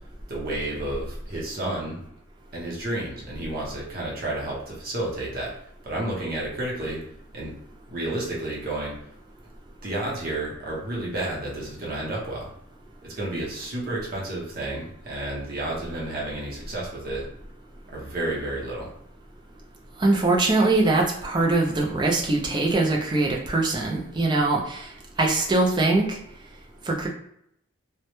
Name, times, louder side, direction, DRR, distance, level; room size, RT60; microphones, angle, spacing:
voice 1, 0.3-2.0 2.5-5.5 5.8-7.0 7.3-7.5 7.9-9.0 9.8-12.5 13.0-17.3 17.9-18.9, right 1 dB, 45° right, -4 dB, 0.7 m, -31 dB
voice 2, 20.0-24.9 25.2-26.2 26.9-27.1, right 2 dB, 20° right, 0 dB, 0.3 m, -22 dB
2.1 x 2.0 x 2.9 m, 0.74 s
head